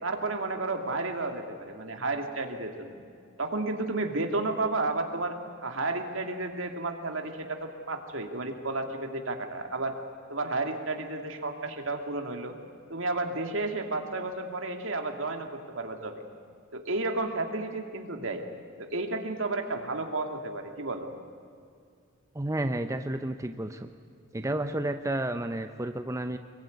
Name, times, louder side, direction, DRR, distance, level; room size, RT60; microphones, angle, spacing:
voice 1, 0.0-3.0 3.4-9.9 10.3-12.6 12.9-16.2 16.7-18.4 18.8-21.1, right 2 dB, 70° right, 4 dB, 2.6 m, -32 dB
voice 2, 22.3-23.9 24.3-26.4, right 1 dB, 15° right, 8 dB, 0.7 m, -31 dB
25.0 x 22.0 x 9.5 m, 2.3 s
head